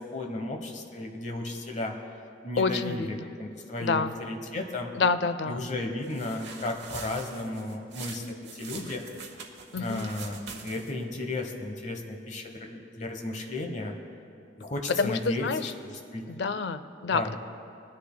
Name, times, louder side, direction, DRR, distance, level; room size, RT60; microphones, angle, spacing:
voice 1, 0.0-1.9 2.4-5.0 5.5-9.1 9.7-13.9 14.6-15.5 16.1-16.3 17.1-17.4, left 2 dB, 40° left, 3 dB, 1.0 m, -34 dB
voice 2, 2.6-3.3 3.8-4.2 4.9-5.7 9.7-10.1 14.9-15.7 16.3-17.4, left 4 dB, 65° left, 12 dB, 0.5 m, -28 dB
sound 1, 6.0-11.0, right 5 dB, 70° right, 1.1 m, -44 dB
20.5 x 10.5 x 2.2 m, 2.6 s
head